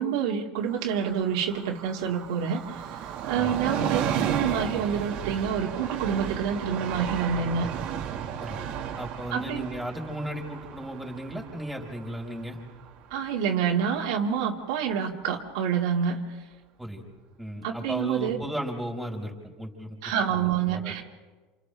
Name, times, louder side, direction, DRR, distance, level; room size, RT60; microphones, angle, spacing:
voice 1, 0.0-2.8 3.2-7.7 9.3-9.7 13.1-16.2 17.6-18.4 20.0-21.0, right 7 dB, 80° right, 0 dB, 2.3 m, -27 dB
Train, 0.6-14.0 14.3-14.4, right 8 dB, 55° right, 1.8 m, -34 dB
voice 2, 9.0-12.6 16.8-17.0 17.4-20.0 20.3-21.0, equal, ahead, -1 dB, 4.8 m, -35 dB
28.0 x 28.0 x 3.4 m, 1.3 s
supercardioid pair, 130°, 3 cm